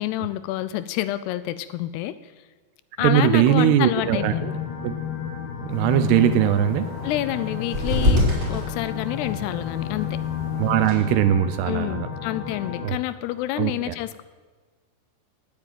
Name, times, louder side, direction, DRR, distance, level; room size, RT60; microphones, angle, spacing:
voice 1, 0.0-2.3 3.0-4.6 7.0-8.2 8.5-10.2 11.6-14.2, left 14 dB, 80° left, 14 dB, 2.4 m, -28 dB
voice 2, 3.0-4.5 4.8-4.9 5.6-6.9 10.6-12.1 12.8-13.0 13.6-13.9, right 11 dB, 80° right, 11 dB, 2.5 m, -20 dB
sound 1, 4.0-12.9, left 8 dB, 65° left, 3.0 m, -31 dB
sound 2, 5.7-10.9, left 1 dB, 20° right, 5.6 m, -28 dB
19.0 x 7.4 x 9.1 m, 1.4 s
omnidirectional pair, 5.1 m